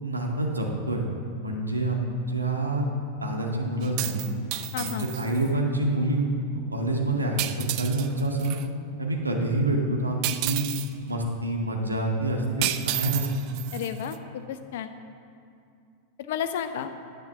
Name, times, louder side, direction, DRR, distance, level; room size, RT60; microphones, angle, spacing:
voice 1, 0.0-1.0 1.4-2.9 3.2-4.4 4.8-8.6 9.0-10.6 11.1-13.3, right 2 dB, 80° right, 0 dB, 1.7 m, -27 dB
sound 1, 3.8-5.5 7.4-8.7 10.2-10.9 12.6-14.2, right 15 dB, 45° right, 0.5 m, -32 dB
voice 2, 4.7-5.1 13.7-14.9 16.2-16.9, left 9 dB, 55° left, 9 dB, 0.8 m, -32 dB
10.5 x 8.9 x 7.2 m, 2.4 s
figure-of-eight pair, 90°, 0 cm